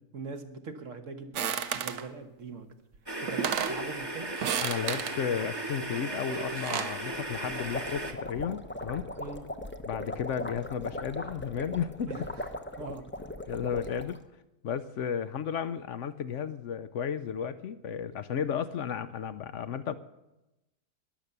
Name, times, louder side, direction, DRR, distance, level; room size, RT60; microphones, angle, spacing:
voice 1, 0.1-2.7 3.2-4.3 9.2-9.4 12.0-12.5 12.8-13.1, right 4 dB, 55° right, 8 dB, 1.5 m, -41 dB
sound 1, 1.3-2.0 2.9-3.0 3.3-3.8 4.4-5.2 6.3-7.0, right 8 dB, 80° right, 1.3 m, -32 dB
sound 2, 3.1-8.1, right 1 dB, 15° right, 1.2 m, -36 dB
voice 2, 4.6-9.1 9.9-12.1 13.5-14.2 14.6-19.9, left 8 dB, 60° left, 13 dB, 0.9 m, -33 dB
sound 3, 7.3-14.2, left 1 dB, 10° left, 0.5 m, -39 dB
20.5 x 7.2 x 6.7 m, 0.94 s
omnidirectional pair, 1.6 m